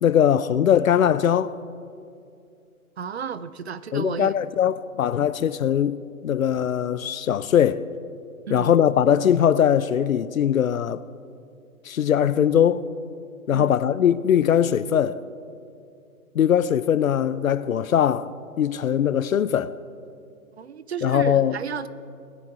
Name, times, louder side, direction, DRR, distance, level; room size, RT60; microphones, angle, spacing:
voice 1, 0.0-1.5 3.9-7.8 8.5-11.0 11.9-12.9 13.5-15.2 16.3-18.3 18.6-19.8 21.0-21.5, left 9 dB, 65° left, 0.6 m, -21 dB
voice 2, 3.0-4.4 8.5-8.7 13.5-13.8 20.6-21.9, right 7 dB, 50° right, 0.5 m, -32 dB
20.0 x 7.1 x 4.8 m
figure-of-eight pair, 135°, 44 cm